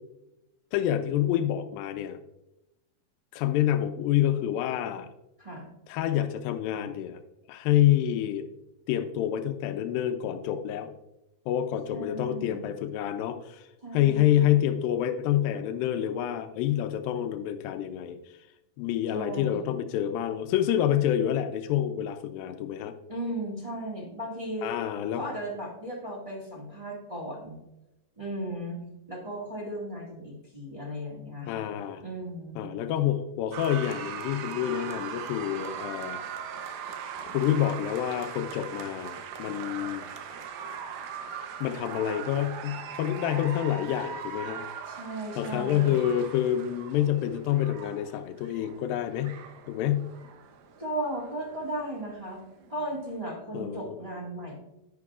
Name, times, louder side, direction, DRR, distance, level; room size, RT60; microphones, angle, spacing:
voice 1, 0.7-2.2 3.3-5.1 5.9-7.2 7.5-8.5 8.9-10.9 11.5-13.7 13.9-18.2 18.8-22.9 24.6-25.2 31.5-32.0 32.6-36.2 37.3-40.0 41.6-44.6 45.4-49.4 49.7-50.1 53.5-54.0, left 11 dB, 90° left, 7 dB, 2.3 m, -27 dB
voice 2, 11.9-12.7 13.8-14.6 19.1-19.7 23.1-24.7 25.1-27.6 28.2-28.8 29.1-31.7 32.0-32.6 44.9-46.1 50.8-52.4 52.7-54.6, right 1 dB, 20° right, -3 dB, 0.9 m, -36 dB
sound 1, 33.5-53.2, right 7 dB, 90° right, 2.7 m, -40 dB
10.5 x 10.5 x 2.4 m, 0.92 s
omnidirectional pair, 4.0 m